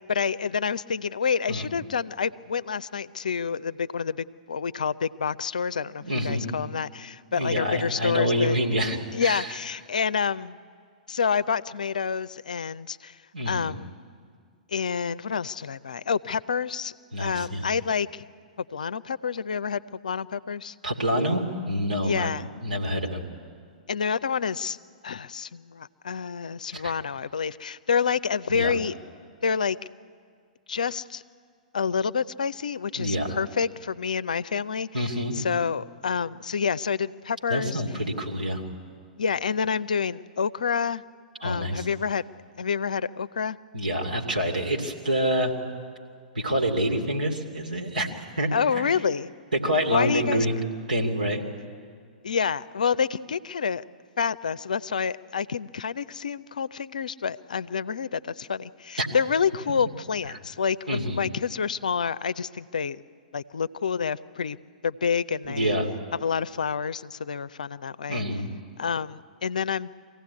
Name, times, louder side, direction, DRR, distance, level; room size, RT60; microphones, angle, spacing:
voice 1, 0.1-8.6 9.1-10.6 11.1-13.2 13.5-13.9 14.7-18.2 18.7-20.7 22.0-22.4 23.9-24.8 25.0-28.9 29.4-29.8 30.7-31.2 31.7-34.9 35.3-37.8 39.2-41.0 41.4-42.2 42.6-43.6 48.5-49.3 49.9-50.5 52.2-53.8 54.2-63.0 63.3-64.6 64.8-65.7 66.2-68.2 68.8-69.9, left 6 dB, 65° left, 16 dB, 0.5 m, -28 dB
voice 2, 6.0-6.5 7.3-9.5 13.3-13.8 17.1-17.7 20.8-23.3 26.7-26.9 28.5-28.7 33.0-33.4 34.9-35.4 37.5-38.6 41.4-41.9 43.7-45.5 46.3-48.1 48.4-48.9 49.5-50.6 50.9-51.5 59.0-59.1 60.3-60.4 60.9-61.2 65.4-65.9 68.1-68.5, equal, 80° right, 1 dB, 2.7 m, -27 dB
24.0 x 16.0 x 9.5 m, 2.1 s
figure-of-eight pair, 110°, 5 cm